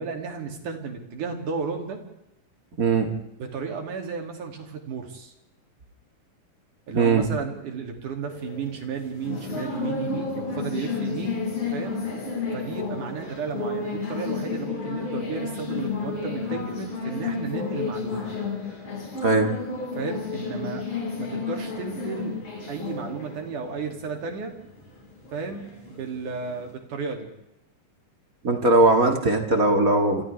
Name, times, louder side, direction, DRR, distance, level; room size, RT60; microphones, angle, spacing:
voice 1, 0.0-2.0 3.4-5.3 6.9-11.4 11.7-12.0 12.5-18.3 19.9-20.9 21.2-22.3 22.7-24.6 25.3-27.3, right 5 dB, 80° right, 3 dB, 4.2 m, -33 dB
voice 2, 2.8-3.1 6.9-7.3 19.2-19.5 28.4-30.2, right 2 dB, 30° right, 3 dB, 2.3 m, -19 dB
sound 1, 8.3-26.7, left 4 dB, 45° left, 7.2 m, -32 dB
29.5 x 27.0 x 3.5 m, 0.86 s
omnidirectional pair, 3.5 m